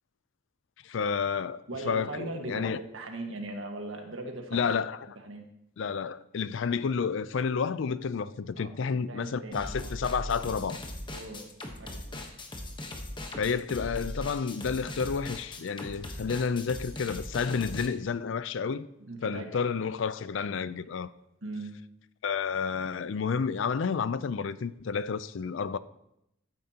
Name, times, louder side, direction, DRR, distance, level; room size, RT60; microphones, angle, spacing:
voice 1, 0.8-2.8 4.5-5.0 5.8-10.8 13.4-18.9 19.2-21.1 22.2-25.8, left 6 dB, 70° left, 0.4 m, -30 dB
voice 2, 1.7-4.7 5.1-5.5 8.5-9.9 11.1-11.5 11.8-12.2 19.1-19.5 21.4-21.8, right 2 dB, 75° right, 1.5 m, -39 dB
sound 1, 9.5-17.9, left 1 dB, 25° left, 1.0 m, -39 dB
14.5 x 8.8 x 2.8 m
head